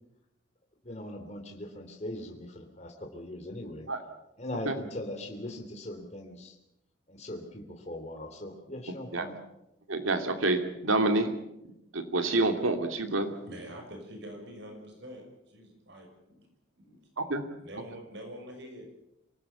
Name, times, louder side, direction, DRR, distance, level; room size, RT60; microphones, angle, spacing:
voice 1, 0.8-3.9 4.4-6.6 7.1-9.4, left 1 dB, 35° left, 3.3 m, -40 dB
voice 2, 9.9-11.3 11.9-13.4 17.2-17.4, right 2 dB, 90° right, 2.8 m, -27 dB
voice 3, 13.2-16.1 16.4-16.5 16.8-17.0 17.4-18.9, equal, 60° right, 6.2 m, -45 dB
26.0 x 18.5 x 7.1 m
head